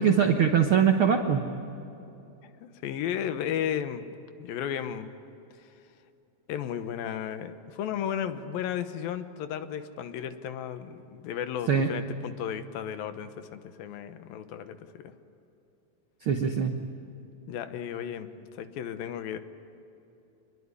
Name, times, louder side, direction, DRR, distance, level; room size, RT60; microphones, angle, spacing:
voice 1, 0.0-1.4 11.7-11.9 16.3-16.7, right 7 dB, 70° right, 5 dB, 1.2 m, -22 dB
voice 2, 2.4-4.0 4.4-5.1 6.5-15.1 17.5-19.4, left 9 dB, 80° left, 10 dB, 2.8 m, -34 dB
26.0 x 21.0 x 9.8 m, 2.9 s
omnidirectional pair, 4.2 m